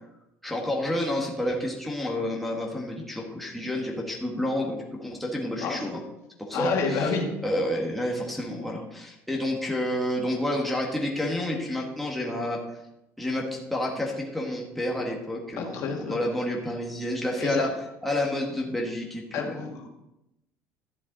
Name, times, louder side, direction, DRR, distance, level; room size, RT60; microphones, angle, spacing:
voice 1, 0.4-6.0 6.4-7.2 7.4-12.6 13.2-17.7 18.0-19.5, left 1 dB, ahead, -2 dB, 1.8 m, -29 dB
voice 2, 6.5-7.3 15.6-16.2 17.4-17.7 19.3-19.9, left 5 dB, 60° left, 1 dB, 1.9 m, -29 dB
11.5 x 7.1 x 4.1 m, 0.90 s
cardioid pair, 125°, 6 cm